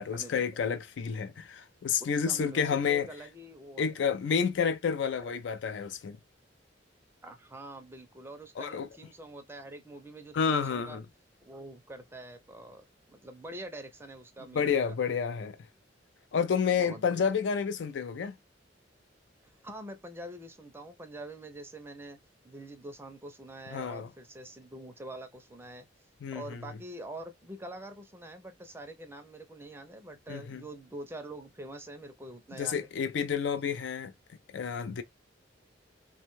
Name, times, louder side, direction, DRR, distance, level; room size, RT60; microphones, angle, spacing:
voice 1, 0.0-3.1 3.8-6.2 8.6-8.9 10.3-11.0 14.5-15.6 16.3-18.4 23.7-24.1 26.2-26.6 30.3-30.6 32.6-34.1 34.5-35.0, left 6 dB, 70° left, 0.4 m, -30 dB
voice 2, 2.0-3.9 7.2-11.0 11.4-14.8 16.7-17.2 19.4-22.2 22.4-25.9 26.3-32.9, right 1 dB, 15° right, 0.5 m, -45 dB
2.6 x 2.2 x 3.0 m
head